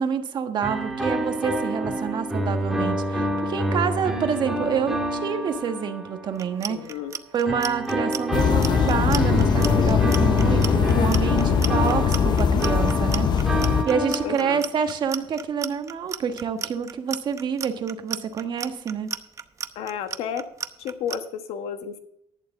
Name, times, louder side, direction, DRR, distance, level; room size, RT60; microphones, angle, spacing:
voice 1, 0.0-6.9 7.3-19.1, right 7 dB, 50° right, 7 dB, 1.4 m, -27 dB
sound 1, 0.6-6.4 7.5-14.9, right 1 dB, 5° right, 2.2 m, -28 dB
Clock, 6.3-21.2, right 6 dB, 30° right, 0.7 m, -33 dB
voice 2, 6.7-7.2 11.5-12.0 14.2-14.6 19.7-20.5 20.8-22.0, left 8 dB, 85° left, 8 dB, 1.4 m, -32 dB
sound 2, 8.3-13.8, left 7 dB, 45° left, 0.6 m, -21 dB
11.5 x 11.0 x 3.7 m, 0.75 s
cardioid pair, 130°, 10 cm